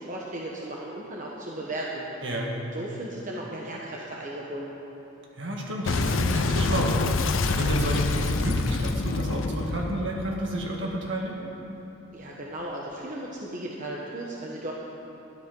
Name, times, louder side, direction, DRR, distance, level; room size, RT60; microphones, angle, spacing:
voice 1, 0.0-2.2 2.7-4.7 12.1-14.7, right 1 dB, 40° right, -3 dB, 1.1 m, -36 dB
voice 2, 5.4-6.9 7.5-11.4, right 1 dB, 65° right, -2 dB, 1.9 m, -30 dB
Boom, 5.9-11.1, left 3 dB, 80° left, 0.6 m, -26 dB
12.5 x 10.0 x 5.4 m, 2.9 s
head